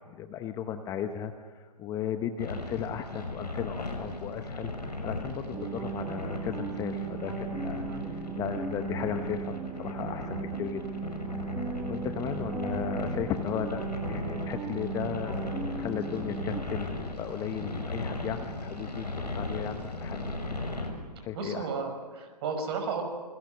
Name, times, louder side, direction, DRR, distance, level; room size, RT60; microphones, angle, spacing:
voice 1, 0.0-4.7 5.0-7.8 8.4-10.8 11.9-19.1 19.3-20.3 21.2-21.7, left 9 dB, 15° left, 8 dB, 1.0 m, -35 dB
sound 1, 2.4-20.9, left 2 dB, 85° left, 6.5 m, -37 dB
sound 2, 5.5-16.6, right 6 dB, 10° right, 1.1 m, -37 dB
voice 2, 21.3-23.0, right 5 dB, 40° right, 5 dB, 5.8 m, -33 dB
27.5 x 24.0 x 6.5 m, 1.5 s
figure-of-eight pair, 130°, 21 cm